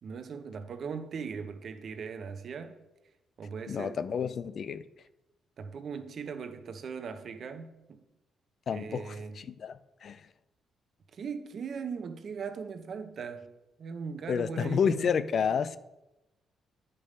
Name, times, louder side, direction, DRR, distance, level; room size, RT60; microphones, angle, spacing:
voice 1, 0.0-2.8 3.4-4.0 5.6-8.0 8.7-9.4 11.1-13.5 13.8-15.1, right 5 dB, 55° right, 0.9 m, -39 dB
voice 2, 3.7-4.8 8.7-10.2 14.3-15.8, left 7 dB, 55° left, 0.5 m, -30 dB
9.9 x 5.3 x 5.4 m
cardioid pair, 90°, 0 cm